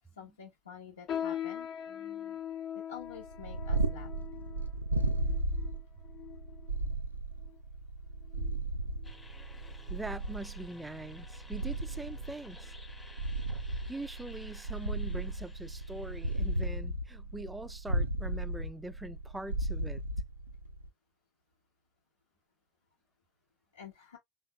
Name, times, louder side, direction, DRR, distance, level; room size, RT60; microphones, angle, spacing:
voice 1, 0.2-1.7 2.7-4.1 23.7-24.2, left 7 dB, 80° left, 0.8 m, -48 dB
sound 1, 1.1-6.8 7.4-7.6 8.3-8.6 9.0-9.2 9.9-10.0, left 10 dB, 45° left, 0.7 m, -41 dB
voice 2, 1.9-2.4 9.9-12.7 13.9-20.0, right 2 dB, 10° right, 0.4 m, -43 dB
Purr, 3.2-20.9, right 2 dB, 85° right, 0.4 m, -35 dB
sound 2, 9.0-16.7, left 2 dB, 15° left, 0.8 m, -56 dB
3.6 x 3.4 x 2.3 m
figure-of-eight pair, 70°, 0 cm